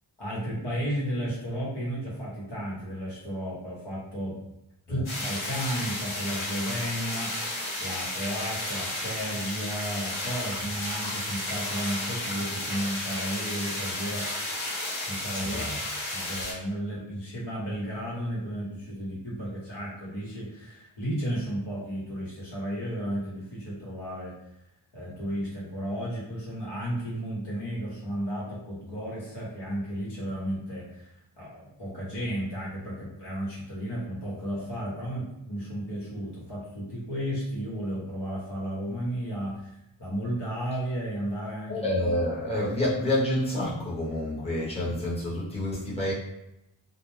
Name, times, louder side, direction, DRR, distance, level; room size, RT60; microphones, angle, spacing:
voice 1, 0.2-4.4 4.9-7.4 7.8-14.3 15.1-15.7 16.1-24.3 24.9-31.1 31.4-41.9, equal, 60° left, -6 dB, 1.3 m, -33 dB
sound 1, 5.0-16.5, left 1 dB, 85° left, 1.1 m, -33 dB
voice 2, 41.7-46.1, left 1 dB, 15° left, -7 dB, 1.0 m, -28 dB
2.4 x 2.2 x 3.2 m, 0.84 s
cardioid pair, 65°, 48 cm